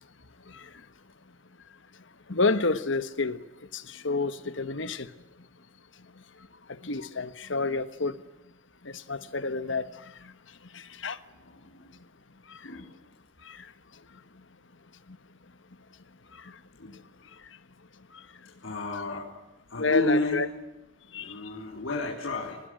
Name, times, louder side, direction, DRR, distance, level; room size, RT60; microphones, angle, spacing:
voice 1, 2.3-3.4 3.7-5.1 6.8-8.1 8.8-9.9 10.7-11.2 13.5-13.6 19.8-20.5 21.1-21.3, left 3 dB, 70° left, 1.3 m, -29 dB
voice 2, 11.4-11.9 12.6-12.9 16.8-16.9 18.6-19.3 19.7-20.4 21.1-22.6, left 2 dB, 85° left, 4.2 m, -31 dB
25.5 x 19.5 x 9.0 m
head